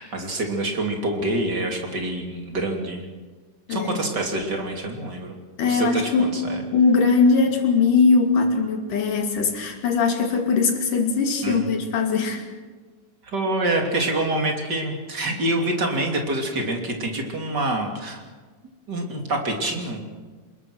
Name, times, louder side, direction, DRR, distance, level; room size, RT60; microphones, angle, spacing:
voice 1, 0.0-3.1 3.7-5.3 5.6-6.6 11.4-11.7 13.2-18.2 18.9-20.0, right 2 dB, 30° right, 2 dB, 3.4 m, -26 dB
voice 2, 3.7-4.0 5.6-6.4 6.7-12.4, left 4 dB, 75° left, 3 dB, 4.2 m, -20 dB
27.5 x 21.0 x 6.3 m, 1.4 s
omnidirectional pair, 3.7 m